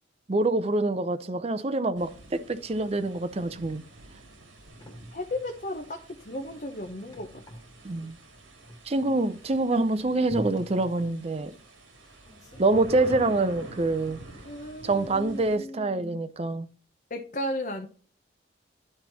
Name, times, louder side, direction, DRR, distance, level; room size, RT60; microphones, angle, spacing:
voice 1, 0.3-3.8 7.8-8.2 8.9-11.5 12.6-14.2 14.8-16.7, right 2 dB, 30° right, 0.5 m, -26 dB
sound 1, 2.0-15.6, right 2 dB, 70° right, 2.0 m, -48 dB
sound 2, 4.7-13.2, equal, 15° left, 2.7 m, -46 dB
voice 2, 5.1-7.3 14.4-16.2 17.1-17.9, left 1 dB, 40° left, 1.0 m, -35 dB
11.0 x 4.2 x 4.1 m
head